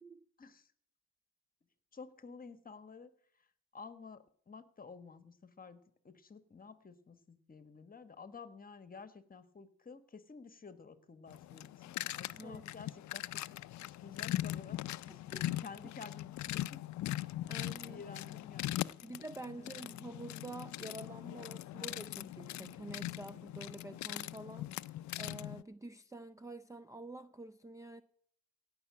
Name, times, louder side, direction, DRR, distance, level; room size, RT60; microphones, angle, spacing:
voice 1, 0.4-0.7 1.9-3.1 3.7-16.8 17.4-18.7 19.0-19.2 19.6-20.2, left 5 dB, 30° left, 1.2 m, -52 dB
sound 1, 11.3-25.6, left 15 dB, 70° left, 0.5 m, -41 dB
voice 2, 17.5-18.0 19.0-28.0, right 2 dB, 10° right, 0.5 m, -48 dB
16.5 x 5.7 x 8.6 m
cardioid pair, 90°, 30 cm